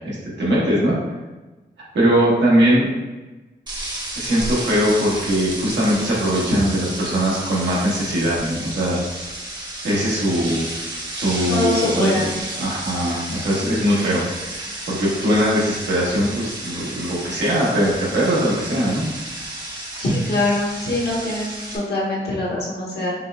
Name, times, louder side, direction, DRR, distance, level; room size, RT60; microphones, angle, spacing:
voice 1, 0.0-1.0 1.9-2.9 4.1-9.0 9.8-10.7 11.1-12.2 12.6-14.2 14.9-19.0, equal, 85° right, -6 dB, 1.2 m, -20 dB
sound 1, 3.7-21.8, right 1 dB, 25° right, 0.8 m, -32 dB
voice 2, 11.4-12.4 20.0-23.1, left 2 dB, 65° left, -5 dB, 1.2 m, -23 dB
5.4 x 2.3 x 2.3 m, 1.1 s
wide cardioid pair, 100°, 18 cm